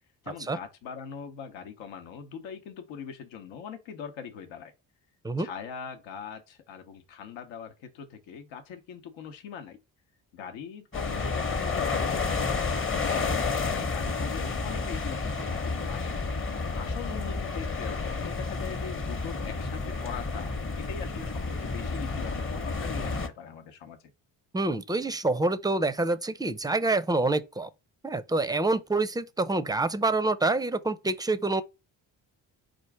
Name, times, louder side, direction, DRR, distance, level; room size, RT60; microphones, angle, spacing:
voice 1, 0.2-4.7 5.4-9.8 10.3-16.2 16.7-24.0, left 7 dB, 80° left, 0.9 m, -41 dB
sound 1, 10.9-23.3, left 4 dB, 25° left, 0.9 m, -30 dB
voice 2, 24.5-27.7 28.0-31.6, right 2 dB, 10° right, 0.5 m, -27 dB
4.5 x 2.5 x 4.6 m
supercardioid pair, 60°, 45 cm